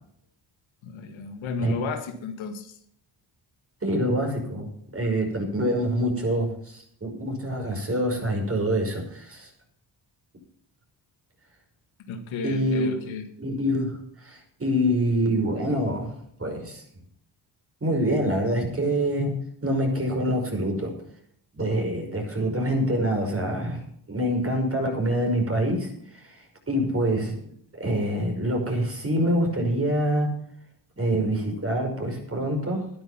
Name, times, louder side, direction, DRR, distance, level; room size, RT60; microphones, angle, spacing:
voice 1, 0.8-2.8 12.1-13.3, left 4 dB, 80° left, 7 dB, 1.9 m, -33 dB
voice 2, 3.8-9.5 12.4-12.9 13.4-14.0 14.2-16.8 17.8-19.3 19.6-20.9 21.5-26.4 26.7-27.4 27.8-30.3 31.0-32.8, equal, 30° right, 3 dB, 5.5 m, -26 dB
12.0 x 10.5 x 5.8 m, 0.65 s
supercardioid pair, 65°, 47 cm